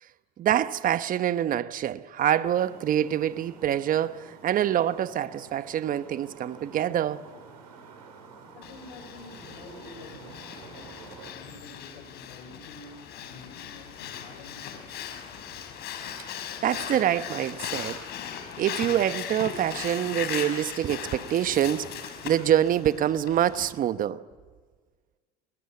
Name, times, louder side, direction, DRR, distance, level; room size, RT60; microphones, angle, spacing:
voice 1, 0.4-7.2 16.6-18.0 18.6-24.2, right 11 dB, 45° right, 1.1 m, -26 dB
sound 1, 2.4-11.3, right 4 dB, 85° right, 5.1 m, -49 dB
voice 2, 8.5-10.9 11.2-15.1, left 3 dB, 85° left, 6.2 m, -48 dB
Breathing, 8.6-23.7, left 9 dB, 60° left, 5.1 m, -38 dB
25.5 x 22.0 x 9.6 m
hypercardioid pair, 80°, 20 cm